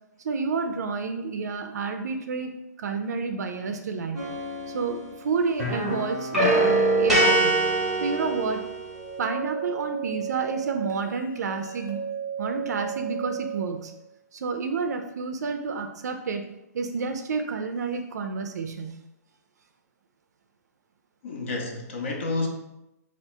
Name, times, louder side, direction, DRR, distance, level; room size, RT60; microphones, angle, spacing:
voice 1, 0.2-2.5 2.8-4.2 4.7-6.3 7.0-7.7 8.0-8.7 9.2-12.0 12.4-13.9 14.3-16.4 16.7-19.0, right 4 dB, 70° right, 6 dB, 0.4 m, -30 dB
sound 1, 4.1-5.2 5.5-9.1, right 2 dB, ahead, 0.7 m, -24 dB
voice 2, 6.6-6.9 21.2-22.5, left 3 dB, 45° left, 1 dB, 0.7 m, -31 dB
sound 2, 8.9-13.9, right 8 dB, 85° left, 1.2 m, -34 dB
3.4 x 2.4 x 4.4 m, 0.92 s
hypercardioid pair, 175°, 9 cm